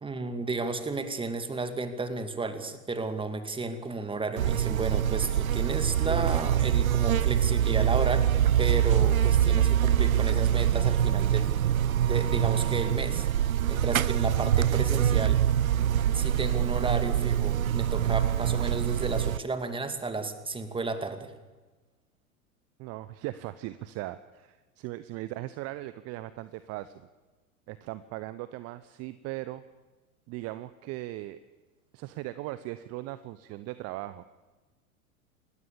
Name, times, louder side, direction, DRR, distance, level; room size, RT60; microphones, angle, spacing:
voice 1, 0.0-8.3 8.5-11.6 12.0-13.3 13.7-15.4 16.1-21.3, right 3 dB, 10° right, 8 dB, 2.6 m, -33 dB
Buzz, 4.4-19.4, right 10 dB, 75° right, 0.7 m, -24 dB
voice 2, 22.8-27.1 27.7-29.6 30.3-31.4 31.9-34.2, right 16 dB, 35° right, 14 dB, 1.0 m, -38 dB
27.5 x 20.0 x 7.2 m, 1.2 s
figure-of-eight pair, 85°, 43 cm